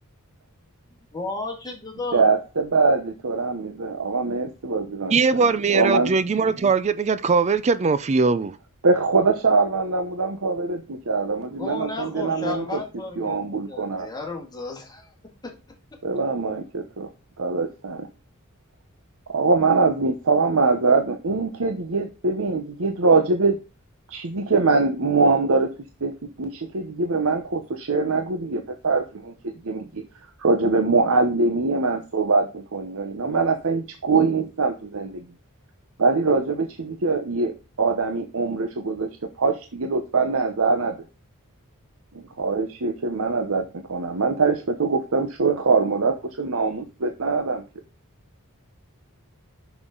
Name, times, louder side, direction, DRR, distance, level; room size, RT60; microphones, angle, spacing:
voice 1, 1.1-2.3 11.6-15.1 15.4-15.5, left 3 dB, 20° left, 2.2 m, -33 dB
voice 2, 2.1-6.1 8.8-12.8 13.2-14.1 16.0-17.1 17.4-18.1 19.3-23.6 24.1-25.7 26.0-29.3 29.6-30.0 30.4-35.2 36.0-39.1 39.4-41.0 42.1-47.6, right 4 dB, 65° right, 0.9 m, -23 dB
voice 3, 5.1-8.6, right 4 dB, 30° right, 0.4 m, -20 dB
10.0 x 6.1 x 3.8 m
head